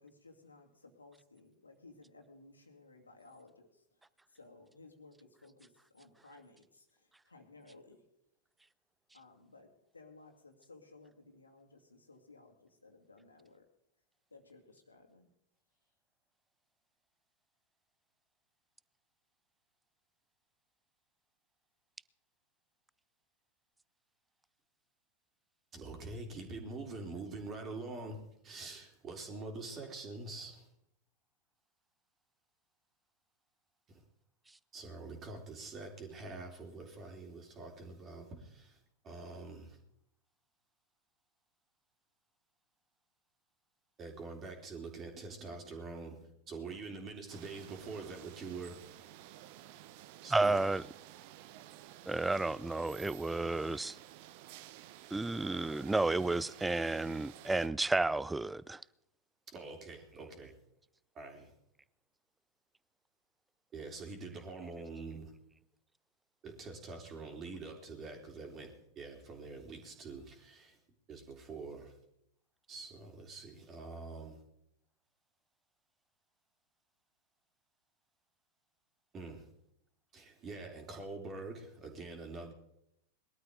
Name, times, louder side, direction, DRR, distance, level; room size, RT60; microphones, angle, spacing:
voice 1, 0.0-3.7 4.3-6.9 7.3-8.0 9.1-13.6 14.3-15.3, left 3 dB, 80° left, 2.3 m, -58 dB
voice 2, 25.7-28.2 28.4-30.7 33.9-34.0 34.7-38.8 39.0-39.8 44.0-48.8 50.2-50.7 59.5-60.5 61.2-61.5 63.7-65.3 66.4-70.8 71.1-72.0 72.7-74.4 79.1-79.5 80.1-82.5, right 3 dB, 25° right, 3.4 m, -45 dB
sound 1, 47.3-57.7, right 13 dB, 45° right, 0.8 m, -53 dB
voice 3, 50.3-50.8 52.1-54.0 55.1-58.8, right 2 dB, 10° right, 0.4 m, -32 dB
21.5 x 12.5 x 3.8 m
figure-of-eight pair, 90°, 0 cm